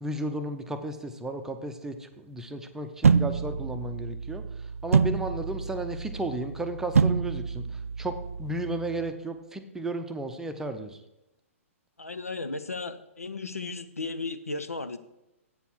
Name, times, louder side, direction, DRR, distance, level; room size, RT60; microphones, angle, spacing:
voice 1, 0.0-4.4 4.8-8.1 8.4-11.0, right 1 dB, 5° right, 6 dB, 0.7 m, -34 dB
sound 1, 3.0-9.1, right 6 dB, 75° right, 0.4 m, -27 dB
voice 2, 12.0-15.0, left 3 dB, 85° left, 11 dB, 0.7 m, -35 dB
8.0 x 7.0 x 6.1 m, 0.93 s
figure-of-eight pair, 120°, 8 cm